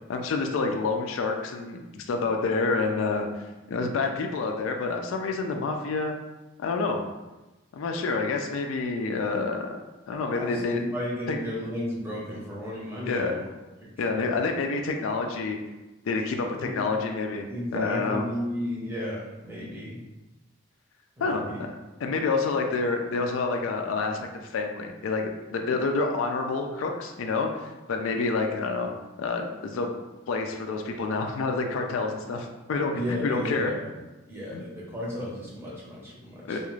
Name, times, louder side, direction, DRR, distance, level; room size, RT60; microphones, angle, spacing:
voice 1, 0.1-6.2 6.6-7.0 7.7-9.7 10.1-10.8 11.3-11.4 13.1-13.3 14.0-15.6 16.1-17.5 17.7-18.3 21.2-21.7 22.0-28.9 29.2-29.9 30.3-33.7 34.5-34.6 36.5-36.6, left 3 dB, 80° left, 4 dB, 0.3 m, -28 dB
voice 2, 10.3-13.5 13.8-14.4 16.6-16.7 17.5-20.0 21.2-21.6 32.9-33.9 34.3-36.6, left 1 dB, 10° right, -6 dB, 0.7 m, -34 dB
2.4 x 2.3 x 3.1 m, 1.1 s
head